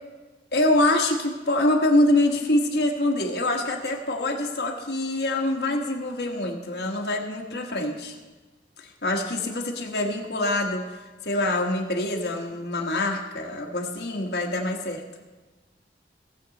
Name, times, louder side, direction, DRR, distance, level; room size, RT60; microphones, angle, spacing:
voice 1, 0.5-8.1 8.8-10.8 11.2-15.0, left 1 dB, 65° left, 1 dB, 1.4 m, -25 dB
18.0 x 7.8 x 4.0 m, 1.2 s
head